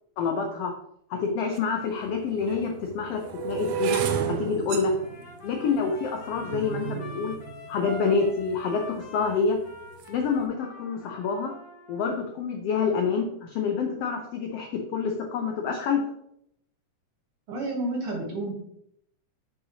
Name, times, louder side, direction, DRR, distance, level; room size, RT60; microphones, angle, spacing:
voice 1, 0.2-0.7 1.1-4.9 5.4-7.4 7.7-9.6 10.1-11.5 11.9-16.0, left 5 dB, 90° left, 3 dB, 1.3 m, -27 dB
sound 1, 1.6-1.7 2.4-8.6 9.2-9.6 9.8-10.2, right 8 dB, 80° right, 1.6 m, -32 dB
Trumpet, 5.0-12.0, left 1 dB, 45° left, 2.5 m, -45 dB
voice 2, 17.5-18.5, right 2 dB, 60° right, 0 dB, 1.7 m, -30 dB
6.5 x 5.6 x 2.8 m, 0.73 s
omnidirectional pair, 3.6 m